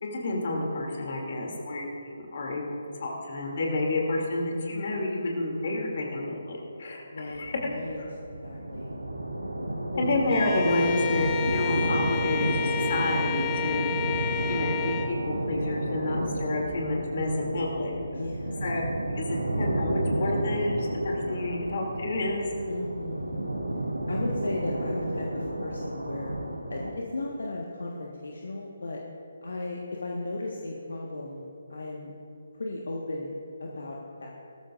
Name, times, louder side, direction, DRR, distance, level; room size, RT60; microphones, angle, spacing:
voice 1, 0.0-7.6 10.0-13.9 14.5-17.9 18.6-18.8 19.2-22.5, left 2 dB, 50° left, -1 dB, 2.7 m, -29 dB
voice 2, 7.1-8.0 8.4-8.9 9.9-10.1 18.1-18.7 19.3-19.4 22.7-23.5 24.1-26.3 26.7-29.0 29.4-32.1 32.6-34.3, left 2 dB, 65° left, -2 dB, 1.4 m, -36 dB
sound 1, 7.3-26.9, right 1 dB, 85° right, 3.1 m, -31 dB
Bowed string instrument, 10.3-15.2, left 11 dB, 20° left, 0.8 m, -32 dB
18.5 x 14.0 x 2.5 m, 2.7 s
figure-of-eight pair, 145°, 0 cm